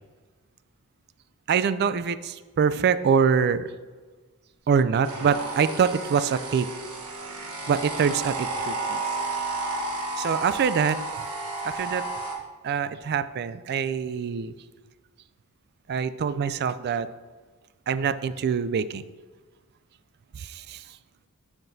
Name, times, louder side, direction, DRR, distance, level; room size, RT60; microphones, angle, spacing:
voice 1, 1.5-3.7 4.7-6.7 7.7-9.0 10.2-11.0 11.6-12.1 12.6-14.5 15.9-17.1 17.9-19.0 20.3-20.8, right 6 dB, 45° right, 14 dB, 0.3 m, -24 dB
sound 1, 5.0-12.4, right 2 dB, 70° right, 1.2 m, -32 dB
10.5 x 5.8 x 2.7 m, 1.4 s
head